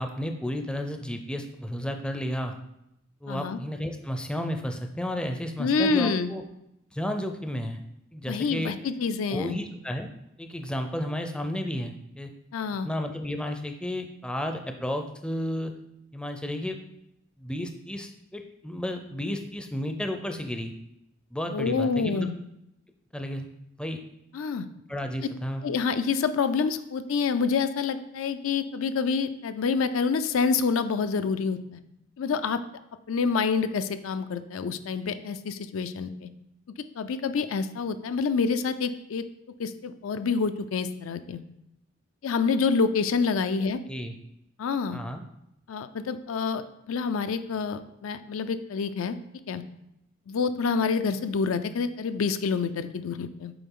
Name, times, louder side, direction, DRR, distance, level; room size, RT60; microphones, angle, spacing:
voice 1, 0.0-2.5 3.2-6.4 6.9-7.8 8.1-8.7 9.3-10.1 10.4-12.3 12.8-15.7 16.1-16.8 17.4-20.7 21.3-22.3 23.1-23.5 23.8-24.0 24.9-25.6 43.9-44.1 44.9-45.2, equal, 5° left, 5 dB, 0.4 m, -32 dB
voice 2, 3.3-3.6 5.6-6.3 8.3-9.6 12.5-12.9 21.5-22.3 24.3-24.7 25.6-31.8 32.2-32.6 33.1-36.3 37.0-39.3 39.6-41.4 42.2-43.8 44.6-45.0 45.7-49.2 49.5-49.6 50.3-53.5, left 5 dB, 85° left, 10 dB, 0.4 m, -27 dB
6.9 x 4.2 x 3.7 m, 0.82 s
head